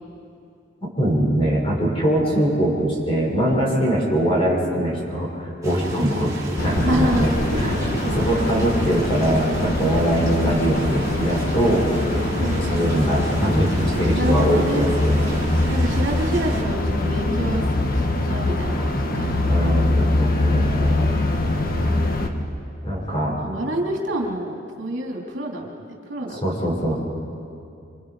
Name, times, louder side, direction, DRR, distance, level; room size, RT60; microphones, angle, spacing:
voice 1, 0.8-6.3 6.6-7.3 7.6-7.7 8.1-11.8 12.4-15.3 19.4-21.2 22.8-23.3 26.4-27.0, right 1 dB, 30° left, -4 dB, 6.1 m, -22 dB
sound 1, 5.6-16.6, right 1 dB, 20° right, 4.6 m, -32 dB
sound 2, 6.6-22.3, left 2 dB, 50° left, 1.6 m, -23 dB
voice 2, 6.8-8.7 12.4-12.9 14.1-14.9 15.7-17.6 17.9-19.3 21.7-22.1 23.4-26.8, right 1 dB, 70° right, -1 dB, 3.2 m, -28 dB
28.5 x 26.0 x 4.9 m, 2.5 s
head